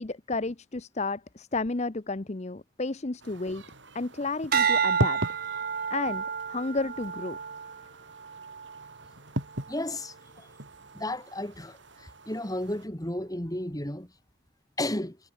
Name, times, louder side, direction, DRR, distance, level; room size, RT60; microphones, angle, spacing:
voice 1, 0.0-3.6 3.9-5.2 5.9-7.4, left 3 dB, 35° left, 0.8 m, -32 dB
sound 1, 3.2-12.9, right 1 dB, 65° right, 5.5 m, -39 dB
sound 2, 4.5-9.0 9.5-9.9, right 7 dB, 50° right, 0.6 m, -30 dB
voice 2, 9.7-10.5 10.9-14.1 14.8-15.2, left 1 dB, 20° left, 2.3 m, -33 dB
head